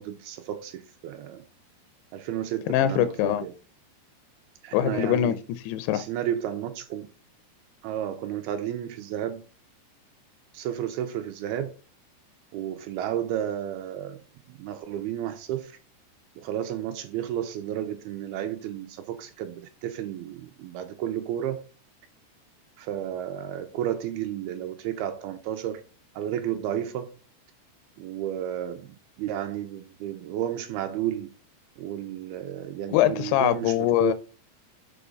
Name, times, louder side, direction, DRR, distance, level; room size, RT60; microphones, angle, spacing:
voice 1, 0.0-1.4 2.1-3.5 4.6-5.4 5.9-7.1 7.8-9.4 10.5-11.7 12.5-14.2 14.5-15.7 16.4-21.6 22.8-25.8 26.2-27.1 28.0-31.3 31.8-34.1, right 11 dB, 80° right, 2.5 m, -32 dB
voice 2, 2.7-3.4 4.7-6.0 32.9-34.1, left 12 dB, 80° left, 2.6 m, -23 dB
7.0 x 5.0 x 5.3 m
omnidirectional pair, 4.9 m